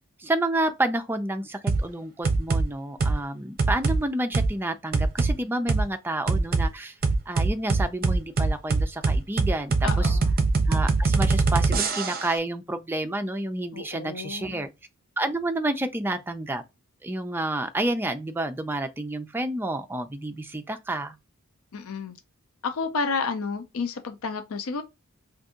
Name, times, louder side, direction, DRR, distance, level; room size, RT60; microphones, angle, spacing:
voice 1, 0.2-6.9 7.3-10.2 10.7-14.7 15.2-16.6 17.0-21.1, right 1 dB, 10° right, 0.4 m, -29 dB
sound 1, 1.7-1.9 2.2-2.6 3.0-3.2 3.6-4.0 4.3-4.5 4.9-5.3 5.7-5.8 6.3-6.7 7.0-12.3, right 3 dB, 45° right, 0.6 m, -22 dB
voice 2, 9.8-10.3 13.7-14.6 21.7-22.2 22.6-24.8, left 4 dB, 75° left, 0.5 m, -31 dB
2.6 x 2.5 x 3.6 m
head